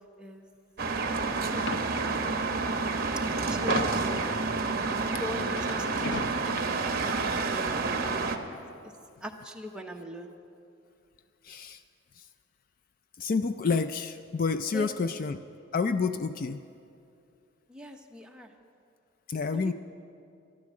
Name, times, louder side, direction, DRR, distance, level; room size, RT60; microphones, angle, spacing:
sound 1, 0.8-8.4, right 4 dB, 45° right, 0.9 m, -29 dB
sound 2, 1.5-1.8 2.7-2.8 3.0-4.2 5.5-6.5, left 1 dB, 60° left, 1.0 m, -36 dB
voice 1, 3.3-4.4 5.2-6.7 7.0-8.4 9.2-10.3 14.7-15.1 17.7-18.5 19.5-19.7, left 1 dB, 5° right, 2 dB, 0.8 m, -40 dB
voice 2, 11.4-11.8 12.1-12.3 13.2-15.4 15.7-16.6 19.3-19.7, left 4 dB, 40° left, 11 dB, 0.3 m, -29 dB
13.5 x 12.0 x 7.4 m, 2.5 s
head